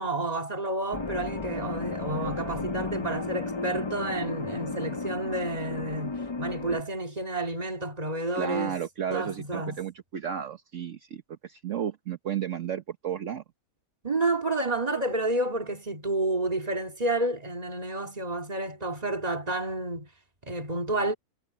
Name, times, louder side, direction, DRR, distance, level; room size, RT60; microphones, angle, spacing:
voice 1, 0.0-8.8 9.1-9.8 14.0-20.1 20.4-21.1, right 2 dB, 25° right, 2.6 m, -30 dB
sound 1, 0.9-6.8, left 3 dB, 45° left, 0.3 m, -34 dB
voice 2, 8.3-13.4, right 9 dB, 60° right, 1.3 m, -33 dB
omnidirectional pair, 1.5 m